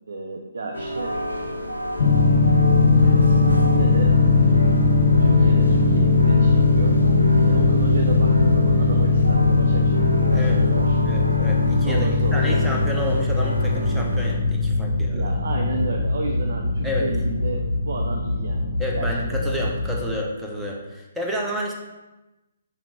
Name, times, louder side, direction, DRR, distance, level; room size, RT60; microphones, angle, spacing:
voice 1, 0.1-1.2 3.4-4.2 5.2-7.0 7.4-11.0 11.8-12.6 14.9-19.5, right 3 dB, 55° right, 2 dB, 0.7 m, -32 dB
sound 1, 0.7-14.4, right 1 dB, 85° right, 0.9 m, -30 dB
sound 2, 2.0-20.1, left 3 dB, 45° left, 0.9 m, -19 dB
voice 2, 11.0-15.3 16.8-17.1 18.8-21.7, equal, 5° right, -2 dB, 1.0 m, -30 dB
5.7 x 5.1 x 4.5 m, 1.0 s
figure-of-eight pair, 130°, 0 cm